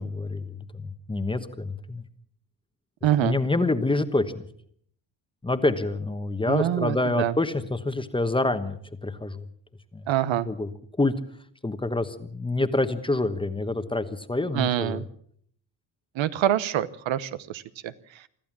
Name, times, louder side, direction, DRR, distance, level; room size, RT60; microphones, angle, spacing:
voice 1, 0.0-2.0 3.2-4.5 5.4-9.5 9.9-10.0 10.5-10.7 11.0-11.1 11.6-15.0, left 2 dB, 10° left, 9 dB, 1.1 m, -27 dB
voice 2, 3.0-3.4 6.5-7.3 10.1-10.5 14.5-15.0 16.1-18.3, right 12 dB, 85° right, 14 dB, 1.1 m, -26 dB
25.0 x 14.0 x 7.4 m, 0.62 s
wide cardioid pair, 170°, 45 cm